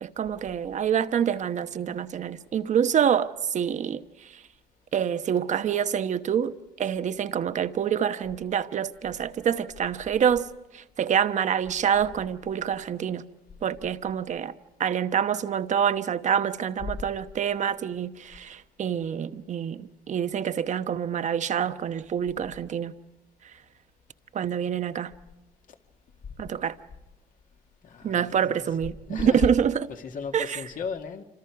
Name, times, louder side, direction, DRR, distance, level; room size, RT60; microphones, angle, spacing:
voice 1, 0.0-4.0 4.9-10.5 10.7-13.2 13.6-14.5 14.8-22.9 24.3-25.1 26.4-26.8 28.0-29.9 30.3-30.6, right 8 dB, 45° right, 1.0 m, -26 dB
voice 2, 27.8-28.7 29.1-29.5 29.9-31.2, left 5 dB, 50° left, 2.0 m, -34 dB
27.0 x 26.0 x 4.8 m
cardioid pair, 110°, 17 cm